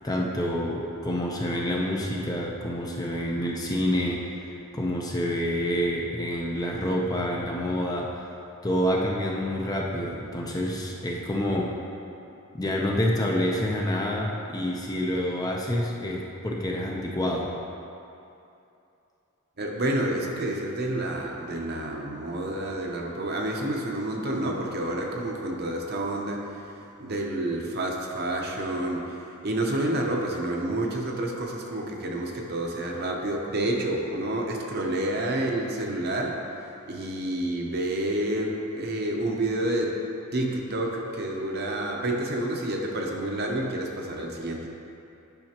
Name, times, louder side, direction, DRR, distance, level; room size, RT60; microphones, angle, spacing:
voice 1, 0.0-8.2 8.6-11.7 12.5-17.5, equal, 15° left, -2 dB, 0.5 m, -28 dB
voice 2, 19.6-36.4 36.8-40.0 40.3-44.7, right 1 dB, 45° right, 0 dB, 0.8 m, -29 dB
10.5 x 5.6 x 2.9 m, 2.7 s
head